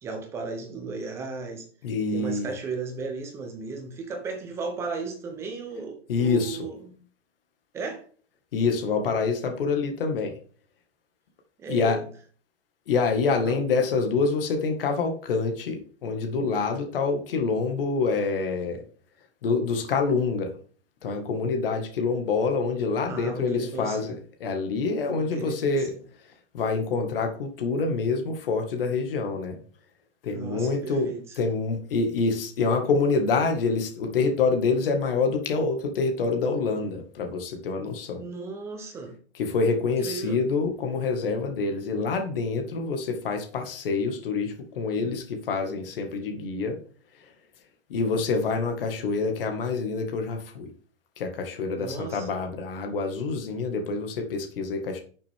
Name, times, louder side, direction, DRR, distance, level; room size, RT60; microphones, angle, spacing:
voice 1, 0.0-1.6 2.1-7.0 7.7-8.0 11.6-12.1 13.4-13.6 23.1-24.1 25.1-26.0 30.3-31.4 38.2-39.2 40.0-40.4 51.7-52.3, right 4 dB, 10° right, 4 dB, 0.8 m, -35 dB
voice 2, 1.8-2.5 6.1-6.6 8.5-10.3 11.7-12.0 12.9-18.8 19.4-20.5 21.0-24.1 24.4-25.9 26.5-29.6 30.2-38.2 39.4-46.8 47.9-50.7 51.2-55.0, left 4 dB, 50° left, 4 dB, 2.0 m, -26 dB
10.5 x 6.6 x 3.7 m, 0.43 s
hypercardioid pair, 170°, 35 cm